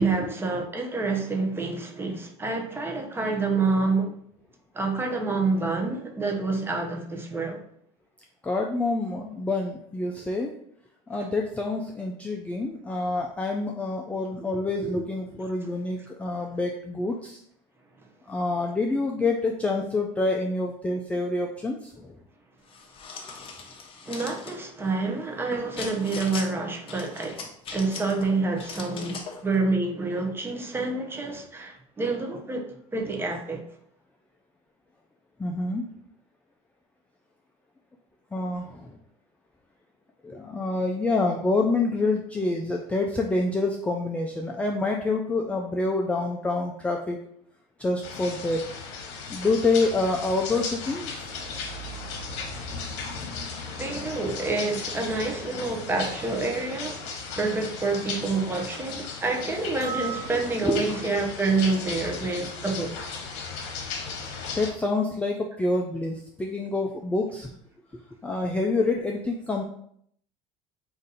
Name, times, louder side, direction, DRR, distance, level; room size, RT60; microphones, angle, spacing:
voice 1, 0.0-4.1 4.7-7.6 11.1-11.3 24.1-33.6 53.8-63.0, right 3 dB, 15° right, 0.7 m, -28 dB
voice 2, 8.4-10.5 11.1-17.4 18.3-22.1 35.4-35.9 38.3-38.9 40.2-47.2 47.8-48.6 49.3-51.2 60.6-60.8 64.6-67.5 68.2-69.6, left 3 dB, 10° left, 0.3 m, -27 dB
sound 1, 22.7-24.6 25.8-26.5 26.9-28.2 28.6-29.4, left 5 dB, 35° left, 0.7 m, -40 dB
sound 2, 48.0-64.7, left 4 dB, 80° left, 0.9 m, -36 dB
sound 3, 59.8-61.2, right 7 dB, 50° right, 1.3 m, -37 dB
3.9 x 2.6 x 4.0 m
supercardioid pair, 120°, 15 cm